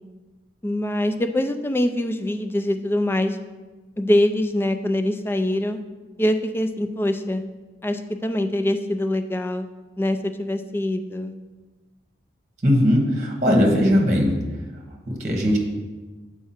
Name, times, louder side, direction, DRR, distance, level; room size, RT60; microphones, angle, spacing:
voice 1, 0.6-3.4 4.0-5.8 6.2-7.4 7.8-9.7 10.0-11.3, left 1 dB, 15° left, 7 dB, 0.3 m, -23 dB
voice 2, 12.6-14.4 15.1-15.6, equal, 40° right, 0 dB, 1.2 m, -19 dB
7.0 x 4.8 x 4.3 m, 1.3 s
head